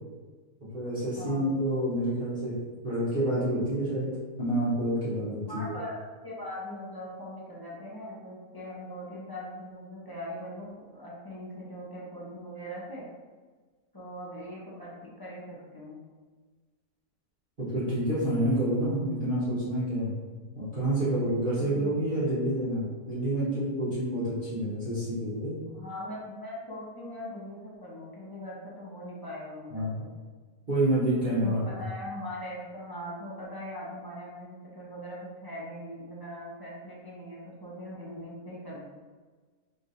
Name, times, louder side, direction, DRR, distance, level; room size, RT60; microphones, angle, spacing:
voice 1, 0.6-2.5 2.8-4.1 4.4-5.7 17.6-20.1 20.5-25.5 29.7-30.0 30.7-31.6, right 1 dB, 35° right, -12 dB, 1.4 m, -28 dB
voice 2, 1.1-1.5 5.5-13.1 13.9-14.9 15.2-16.0 21.6-21.9 25.7-30.1 31.4-38.9, equal, 35° left, -6 dB, 0.3 m, -41 dB
4.4 x 3.1 x 2.6 m, 1.4 s
omnidirectional pair, 1.6 m